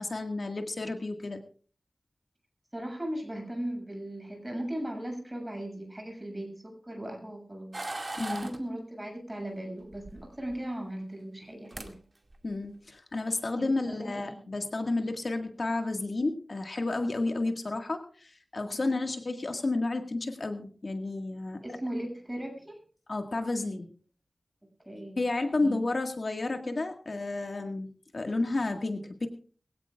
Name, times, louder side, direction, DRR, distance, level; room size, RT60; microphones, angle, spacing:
voice 1, 0.0-1.4 8.2-8.5 12.4-21.6 23.1-23.9 25.2-27.9 28.1-29.3, left 2 dB, 55° left, 4 dB, 1.8 m, -31 dB
voice 2, 2.7-12.0 13.6-14.4 18.8-18.9 21.6-22.8 24.9-25.2 25.6-25.8, right 1 dB, 15° right, 2 dB, 7.5 m, -38 dB
sound 1, 7.7-8.6 9.9-10.6 11.4-11.5 11.7-11.9 12.3-12.7, right 2 dB, 35° right, 2.2 m, -38 dB
22.5 x 16.5 x 2.4 m, 0.41 s
wide cardioid pair, 90°, 0 cm